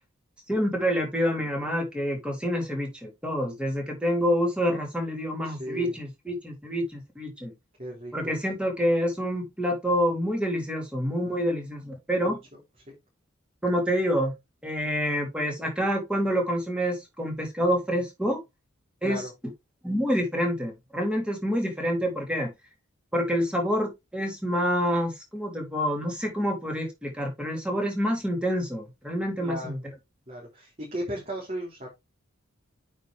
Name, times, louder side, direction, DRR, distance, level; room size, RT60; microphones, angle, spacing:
voice 1, 0.5-7.5 8.1-12.4 13.6-14.3 14.6-18.4 19.0-19.2 19.8-22.5 23.1-29.8, equal, 5° right, 3.2 m, -27 dB
voice 2, 5.4-6.0 7.8-8.3 12.2-12.4 12.9-13.0 19.0-19.3 29.4-29.8 30.3-31.9, equal, 35° right, 3.8 m, -36 dB
8.9 x 5.3 x 3.5 m
head